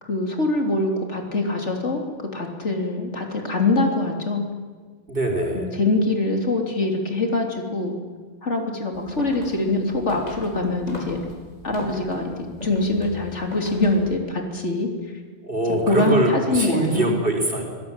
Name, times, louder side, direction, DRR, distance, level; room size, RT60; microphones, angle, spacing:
voice 1, 0.0-4.4 5.5-8.0 8.4-11.2 11.6-14.9 15.9-17.2, left 2 dB, 80° left, 3 dB, 3.6 m, -24 dB
voice 2, 5.1-5.7 15.4-17.6, right 1 dB, 50° right, 3 dB, 4.6 m, -23 dB
sound 1, 8.9-14.1, left 1 dB, 35° left, 5.0 m, -37 dB
25.0 x 18.0 x 9.0 m, 1.5 s
omnidirectional pair, 1.2 m